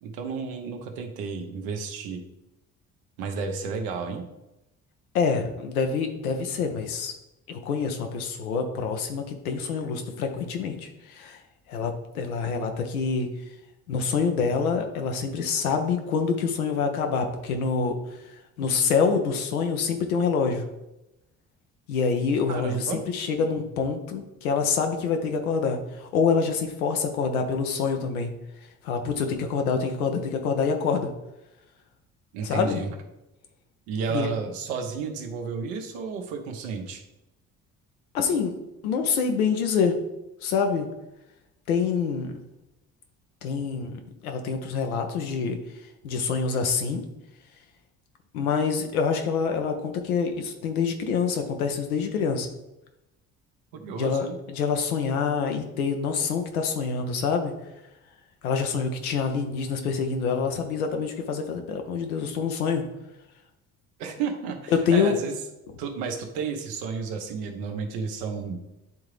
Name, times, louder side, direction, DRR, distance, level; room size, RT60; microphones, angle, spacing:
voice 1, 0.0-2.2 3.2-4.3 22.5-23.0 32.3-32.9 33.9-37.0 53.7-54.4 64.0-65.4 65.8-68.6, right 5 dB, 70° right, 4 dB, 1.0 m, -32 dB
voice 2, 5.1-7.1 7.5-11.4 11.7-13.3 13.9-18.0 18.6-20.6 21.9-28.3 28.8-31.1 32.4-32.8 34.1-34.3 38.1-38.5 38.8-40.0 40.4-40.9 41.7-42.4 43.4-45.6 46.0-47.1 48.3-52.5 54.0-57.5 58.4-62.8 64.7-65.1, left 5 dB, 85° left, 5 dB, 0.8 m, -26 dB
9.6 x 3.7 x 3.2 m, 0.93 s
hypercardioid pair, 50°, 42 cm